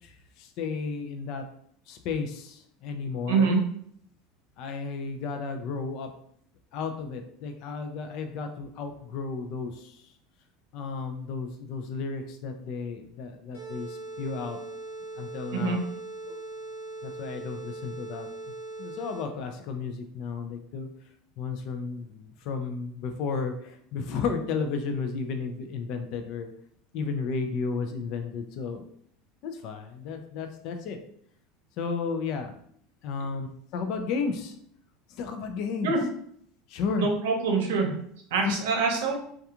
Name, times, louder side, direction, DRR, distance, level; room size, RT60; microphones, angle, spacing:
voice 1, 0.6-1.4 1.9-2.5 2.8-3.6 4.6-6.1 6.7-9.7 10.7-13.9 14.2-14.6 15.2-15.8 16.3-16.4 17.0-18.3 18.8-20.9 21.4-22.1 22.5-26.5 26.9-28.8 29.4-31.0 31.8-32.5 33.0-33.5 33.7-34.5 35.2-35.9 36.7-37.1 38.4-38.5, left 5 dB, 55° left, 6 dB, 0.4 m, -33 dB
voice 2, 3.3-3.6 15.5-15.8 35.8-36.0 37.0-37.9 38.3-39.1, right 4 dB, 90° right, 2 dB, 0.7 m, -25 dB
sound 1, 13.5-19.5, right 2 dB, 80° left, 0.9 m, -40 dB
2.3 x 2.3 x 2.8 m, 0.65 s
supercardioid pair, 140°, 0 cm